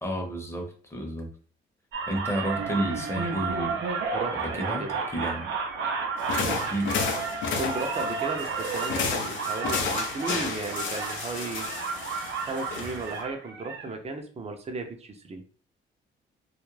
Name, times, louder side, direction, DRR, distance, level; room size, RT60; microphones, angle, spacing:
voice 1, 0.0-1.3 2.1-3.9 4.3-5.5 6.4-7.0, right 1 dB, 15° left, 2 dB, 0.8 m, -31 dB
sound 1, 1.9-13.9, right 5 dB, 80° right, 0.6 m, -32 dB
voice 2, 4.1-5.0 6.4-6.6 7.6-11.7 12.4-15.4, right 3 dB, 30° right, 4 dB, 0.6 m, -35 dB
sound 2, 6.2-13.2, left 5 dB, 75° left, 0.5 m, -32 dB
2.3 x 2.0 x 3.1 m, 0.42 s
cardioid pair, 90°, 20 cm